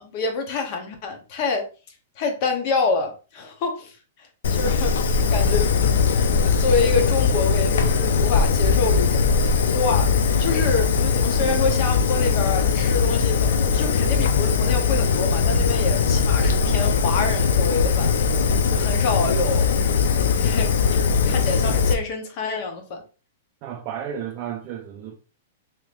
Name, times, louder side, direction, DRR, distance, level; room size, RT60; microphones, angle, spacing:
voice 1, 0.0-1.7 2.2-3.9 4.5-5.7 6.4-18.1 18.7-19.7 20.4-23.0, left 4 dB, 40° left, 0.7 m, -27 dB
Fire, 4.4-21.9, left 5 dB, 75° left, 0.4 m, -20 dB
voice 2, 23.6-25.2, right 9 dB, 35° right, 0.4 m, -32 dB
3.3 x 2.8 x 2.4 m
hypercardioid pair, 160°, 0 cm